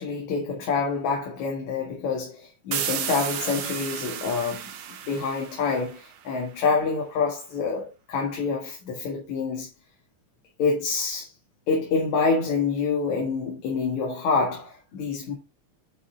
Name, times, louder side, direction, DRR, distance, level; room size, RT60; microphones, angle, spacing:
voice 1, 0.0-4.6 5.1-9.7 10.6-11.3 11.7-15.3, left 4 dB, 75° left, 3.1 m, -27 dB
sound 1, 2.7-6.3, right 9 dB, 85° right, 1.0 m, -33 dB
9.6 x 5.5 x 3.3 m
omnidirectional pair, 3.4 m